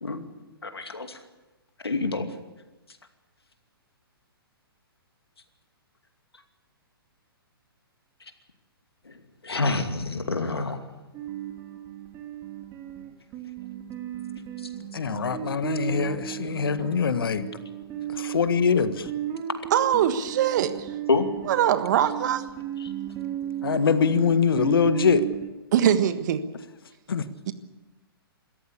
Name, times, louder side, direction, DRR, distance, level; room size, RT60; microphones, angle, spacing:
voice 1, 0.6-1.2 1.8-2.3 9.1-9.2 9.4-10.8 21.1-21.3 22.8-22.9, left 3 dB, 85° left, 7 dB, 2.5 m, -27 dB
sound 1, 11.1-25.5, right 11 dB, 30° right, 2.7 m, -35 dB
voice 2, 14.9-17.5 18.1-19.1 23.6-25.3 27.1-27.2, left 6 dB, 65° left, 12 dB, 1.4 m, -23 dB
voice 3, 19.7-20.9 21.5-22.5 25.7-26.4 27.5-27.6, right 10 dB, 50° right, 11 dB, 1.5 m, -22 dB
26.0 x 14.0 x 8.4 m, 1.1 s
figure-of-eight pair, 120°, 13 cm